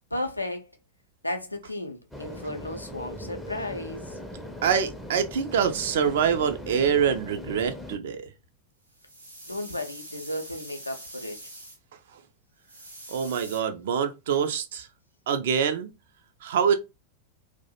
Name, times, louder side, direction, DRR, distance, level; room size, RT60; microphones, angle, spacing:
voice 1, 0.1-0.8 1.2-4.2 9.4-11.4, left 1 dB, 85° left, 0.4 m, -34 dB
sound 1, 2.1-8.0, left 1 dB, 5° left, 0.4 m, -40 dB
voice 2, 4.6-8.3 13.1-14.9 15.3-15.9 16.4-16.7, right 7 dB, 55° right, 0.4 m, -25 dB
sound 2, 8.9-11.8 12.6-13.6, right 1 dB, 85° right, 0.8 m, -44 dB
2.3 x 2.0 x 2.8 m
figure-of-eight pair, 90°, 0 cm